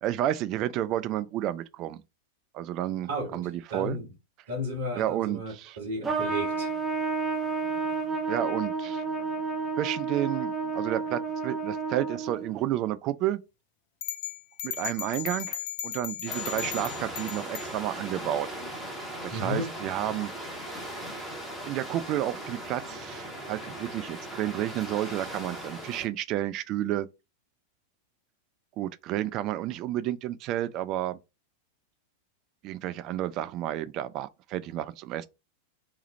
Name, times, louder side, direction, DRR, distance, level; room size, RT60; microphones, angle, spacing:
voice 1, 0.0-2.0 2.5-4.0 5.0-5.8 8.3-9.0 9.8-13.4 14.6-18.5 19.2-20.6 21.6-27.1 28.8-31.2 32.6-35.3, right 13 dB, 40° right, 0.3 m, -31 dB
voice 2, 3.1-3.4 3.7-4.1 4.5-6.7 19.3-19.7, equal, 65° right, 1.4 m, -33 dB
Trumpet, 6.0-12.6, right 4 dB, 15° right, 0.7 m, -31 dB
sound 1, 14.0-17.7, left 11 dB, 50° left, 0.5 m, -36 dB
sound 2, 16.3-26.1, right 1 dB, 5° left, 1.2 m, -38 dB
3.2 x 2.4 x 4.0 m
figure-of-eight pair, 90°, 0 cm